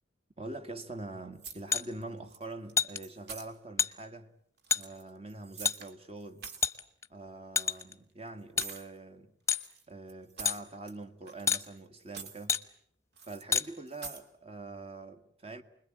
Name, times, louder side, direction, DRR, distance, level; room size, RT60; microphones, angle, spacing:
voice 1, 0.4-4.3 4.7-6.5 7.1-9.4 9.9-12.6 13.2-15.6, right 2 dB, 30° right, 1.8 m, -44 dB
sound 1, 1.4-2.0 2.3-2.7 3.0-3.5 4.6-5.9 6.2-6.7 7.6-7.8 8.6-8.9 9.5-11.0 11.3-11.8 12.0-12.5 13.2-13.4 13.9-14.2, right 5 dB, 60° right, 2.3 m, -46 dB
sound 2, 1.7-1.8 2.8-3.0 3.8-3.9 4.7-4.8 5.6-5.8 6.6-7.1 7.6-7.9 8.6-8.7 9.5-9.7 10.4-10.6 11.5-11.6 12.5-12.6 13.5-13.7, left 7 dB, 15° left, 1.1 m, -27 dB
29.5 x 21.5 x 9.0 m
head